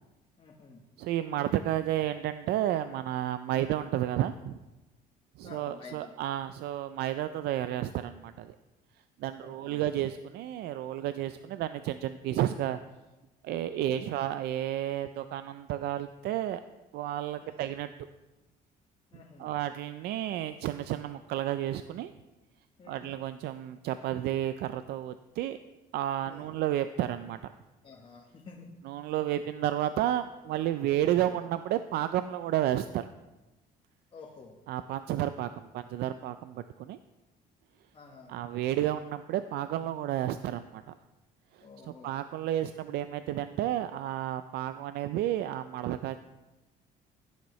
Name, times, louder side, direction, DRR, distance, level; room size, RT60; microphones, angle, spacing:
voice 1, 0.4-0.8 3.5-3.8 5.4-6.1 9.4-9.8 13.8-14.0 17.4-17.6 19.1-19.5 22.8-23.1 26.2-26.5 27.8-28.7 31.3-31.4 34.1-34.6 37.9-38.3 41.6-42.1, left 4 dB, 30° left, -1 dB, 1.2 m, -50 dB
voice 2, 1.0-4.6 5.4-8.5 9.2-12.8 13.4-16.6 16.9-17.9 19.4-22.1 22.9-25.6 25.9-27.5 28.8-33.1 34.7-37.0 38.3-40.8 41.6-46.2, right 12 dB, 75° right, 11 dB, 0.4 m, -31 dB
16.0 x 7.3 x 3.1 m, 1.1 s
cardioid pair, 110°, 17 cm